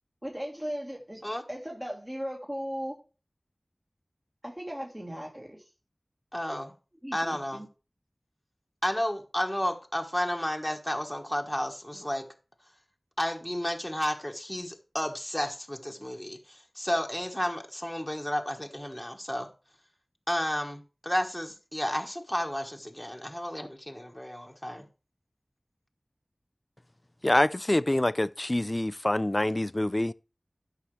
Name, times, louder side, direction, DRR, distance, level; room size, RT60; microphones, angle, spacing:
voice 1, 0.2-3.0 4.4-5.6 6.5-6.6 7.0-7.7, equal, 20° right, 1.7 m, -37 dB
voice 2, 6.3-6.7 7.1-7.6 8.8-12.3 13.2-19.5 20.3-24.9, equal, 10° left, 1.3 m, -32 dB
voice 3, 27.2-30.1, left 1 dB, 30° left, 0.4 m, -26 dB
12.5 x 5.9 x 3.2 m
wide cardioid pair, 50°, 0 cm